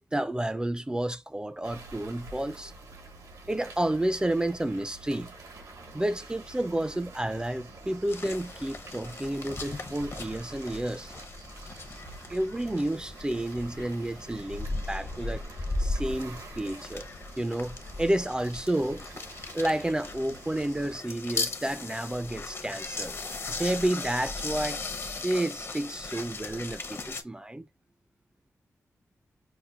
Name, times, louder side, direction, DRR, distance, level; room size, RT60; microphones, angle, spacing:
voice 1, 0.1-2.7 3.5-5.4 5.9-11.1 12.3-15.4 15.8-17.1 17.4-19.1 19.5-23.2 23.6-24.8 25.2-27.7, right 1 dB, 15° right, 0.4 m, -30 dB
sound 1, 1.6-21.0, right 2 dB, 85° right, 1.3 m, -48 dB
sound 2, 8.1-27.2, left 3 dB, 45° left, 0.7 m, -37 dB
5.6 x 2.1 x 2.4 m
cardioid pair, 75°, 6 cm